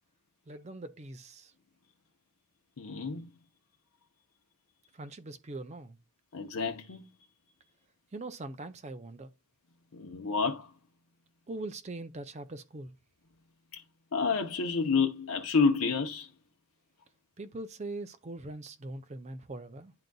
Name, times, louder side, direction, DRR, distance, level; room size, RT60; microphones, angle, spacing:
voice 1, 0.5-1.5 4.9-6.0 8.1-9.3 11.5-12.9 17.4-19.9, right 2 dB, 30° right, 0.5 m, -42 dB
voice 2, 2.8-3.3 6.3-7.0 9.9-10.7 13.7-13.8 14.1-16.3, left 5 dB, 75° left, 0.7 m, -29 dB
10.5 x 3.9 x 2.3 m
head